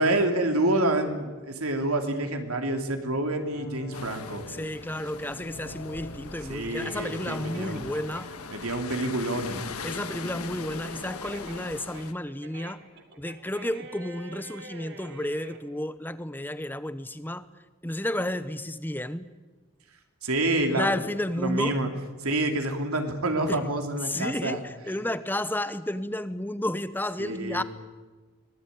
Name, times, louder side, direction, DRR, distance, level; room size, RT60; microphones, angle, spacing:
voice 1, 0.0-4.4 6.5-7.9 8.5-9.6 20.2-21.0 21.4-21.9 22.2-24.6 27.2-27.6, right 1 dB, 75° right, 3.2 m, -27 dB
sound 1, 3.2-10.0 10.3-10.4, left 1 dB, 55° left, 3.2 m, -46 dB
sound 2, 3.9-12.1, left 4 dB, 80° left, 1.5 m, -40 dB
voice 2, 4.5-8.3 9.8-12.8 13.2-17.5 17.8-19.3 20.7-21.8 23.5-23.6 24.0-27.6, left 1 dB, 10° left, 0.8 m, -32 dB
sound 3, 5.0-8.4 8.8-15.6, right 3 dB, 50° right, 2.7 m, -48 dB
24.0 x 19.5 x 9.5 m
head